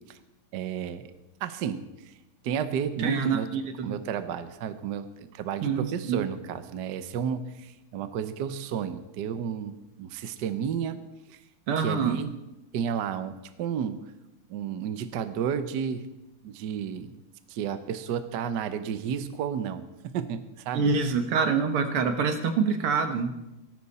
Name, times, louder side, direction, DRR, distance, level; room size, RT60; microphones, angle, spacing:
voice 1, 0.5-1.1 1.4-2.1 2.4-3.5 3.8-9.7 10.0-11.0 11.3-11.4 11.8-12.3 12.7-14.0 14.5-16.1 16.4-17.1 17.5-20.9, right 8 dB, 60° right, 10 dB, 1.2 m, -32 dB
voice 2, 3.0-4.0 5.6-6.3 11.7-12.2 20.7-23.3, right 5 dB, 80° right, 7 dB, 2.1 m, -26 dB
18.0 x 14.0 x 4.2 m, 0.97 s
omnidirectional pair, 2.4 m